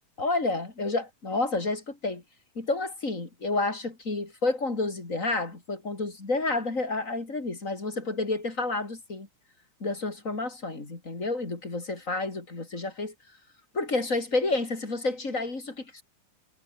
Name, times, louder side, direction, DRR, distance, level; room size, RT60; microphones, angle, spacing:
voice 1, 0.2-2.2 2.6-9.3 9.8-13.1 13.7-16.0, left 3 dB, 25° left, 3.8 m, -30 dB
omnidirectional pair, 3.8 m